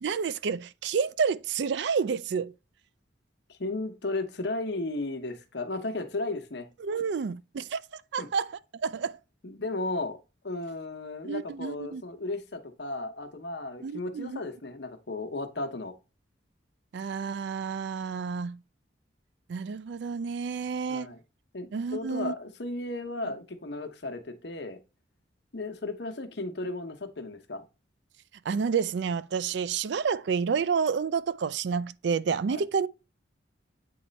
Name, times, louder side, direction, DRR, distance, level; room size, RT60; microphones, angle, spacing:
voice 1, 0.0-2.5 6.8-7.8 8.1-8.5 8.8-9.1 11.2-12.0 13.8-14.4 16.9-18.6 19.5-21.1 21.7-22.3 28.5-32.9, right 6 dB, 65° right, 0.4 m, -29 dB
voice 2, 3.5-6.7 8.2-8.3 9.4-10.2 10.4-15.9 20.9-21.2 21.5-24.8 25.5-27.6 32.5-32.6, left 2 dB, 60° left, 0.9 m, -35 dB
8.5 x 3.2 x 4.0 m
head